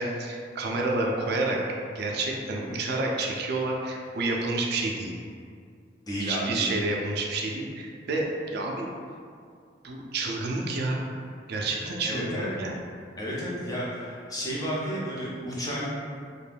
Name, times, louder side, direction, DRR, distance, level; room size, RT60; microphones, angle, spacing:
voice 1, 0.0-1.6 1.9-5.1 6.2-8.9 9.8-11.0 11.5-12.8, right 2 dB, 60° right, 0 dB, 0.4 m, -29 dB
voice 2, 6.1-6.7 12.0-12.5 13.2-15.9, equal, 20° left, -6 dB, 0.6 m, -32 dB
2.5 x 2.2 x 3.3 m, 2.2 s
head